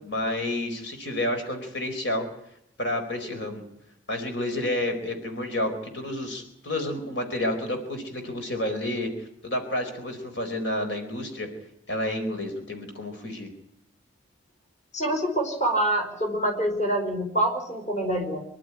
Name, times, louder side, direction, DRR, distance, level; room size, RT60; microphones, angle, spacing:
voice 1, 0.0-2.3 2.8-3.6 4.1-11.5 11.9-13.5, left 1 dB, 60° left, 5 dB, 4.3 m, -30 dB
voice 2, 14.9-18.4, right 1 dB, 35° left, 3 dB, 4.8 m, -26 dB
26.0 x 12.0 x 9.9 m, 0.77 s
head